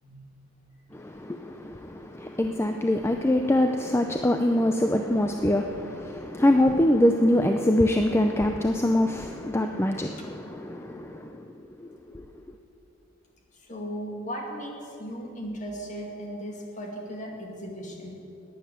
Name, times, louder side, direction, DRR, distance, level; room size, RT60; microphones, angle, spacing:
voice 1, 0.9-11.5 11.8-12.2, left 1 dB, 10° left, 5 dB, 0.4 m, -24 dB
voice 2, 13.7-18.2, equal, 35° left, 0 dB, 2.3 m, -36 dB
12.0 x 9.5 x 9.4 m, 2.8 s
head